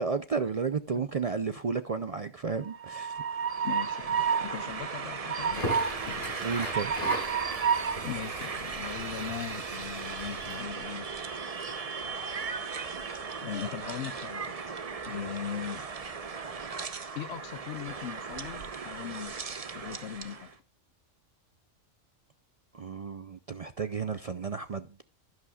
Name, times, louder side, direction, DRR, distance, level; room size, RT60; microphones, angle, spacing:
voice 1, 0.0-3.2 6.4-6.9 22.7-25.0, right 5 dB, 60° right, 0.3 m, -32 dB
Train, 2.6-20.4, right 6 dB, 35° right, 0.7 m, -34 dB
voice 2, 3.6-6.4 7.1-7.4 8.0-11.1 13.4-14.8 15.1-15.8 17.1-20.5, left 9 dB, 65° left, 0.9 m, -40 dB
Crackle, 5.4-10.6, left 1 dB, 30° left, 5.4 m, -39 dB
11.0 x 11.0 x 2.3 m
omnidirectional pair, 1.3 m